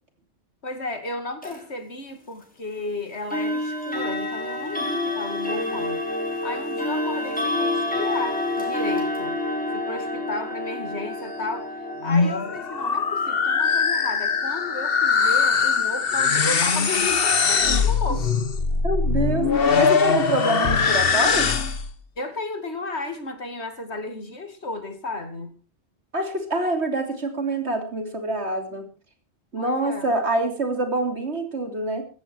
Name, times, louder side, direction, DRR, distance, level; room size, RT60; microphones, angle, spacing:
voice 1, 0.6-6.0 6.4-9.4 9.7-18.3 22.2-25.5 29.6-30.1, left 2 dB, 75° left, 2.7 m, -33 dB
sound 1, 1.4-1.6 3.3-16.1, left 1 dB, 5° left, 5.2 m, -29 dB
sound 2, 11.9-21.9, left 5 dB, 60° left, 1.4 m, -21 dB
voice 2, 18.8-21.5 26.1-28.9 29.5-32.0, right 2 dB, 80° right, 3.4 m, -26 dB
16.0 x 14.0 x 4.6 m
omnidirectional pair, 1.1 m